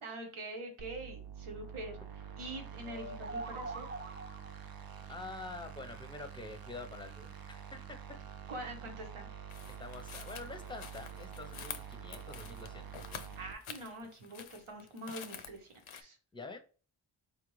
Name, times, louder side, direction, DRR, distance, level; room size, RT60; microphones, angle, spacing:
voice 1, 0.0-2.0 2.4-3.9 8.5-9.3 13.4-16.2, right 1 dB, 85° right, 3 dB, 1.1 m, -44 dB
sound 1, 0.8-13.5, right 8 dB, 50° right, 0.6 m, -47 dB
sound 2, 2.8-4.7, right 2 dB, 20° right, 0.9 m, -43 dB
voice 2, 5.1-8.2 9.8-12.9 16.3-16.6, left 3 dB, 10° left, 6 dB, 0.6 m, -46 dB
sound 3, 9.5-16.0, left 7 dB, 85° left, 0.6 m, -48 dB
4.3 x 2.4 x 3.1 m, 0.38 s
cardioid pair, 40°, 48 cm